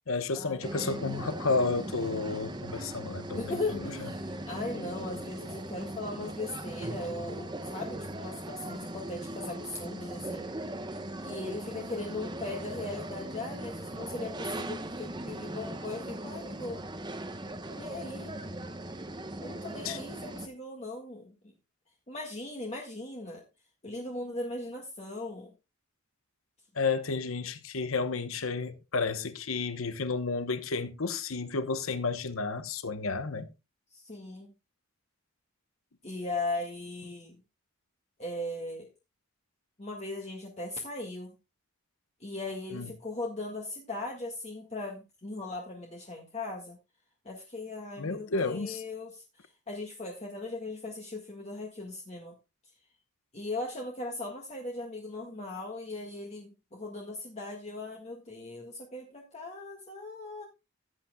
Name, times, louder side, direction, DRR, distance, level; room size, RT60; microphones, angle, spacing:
voice 1, 0.1-3.6 19.8-20.0 26.7-33.5 42.7-42.9 48.0-48.8, left 4 dB, 80° left, 1.0 m, -31 dB
sound 1, 0.6-20.5, right 1 dB, 20° right, 0.9 m, -39 dB
voice 2, 3.3-10.4 11.2-16.8 17.7-18.3 19.4-21.5 22.1-23.4 23.8-25.5 33.9-34.5 36.0-37.4 38.2-38.9 39.8-41.3 42.2-46.8 47.2-52.3 53.3-60.4, left 2 dB, 30° left, 1.7 m, -38 dB
16.0 x 8.6 x 2.3 m
head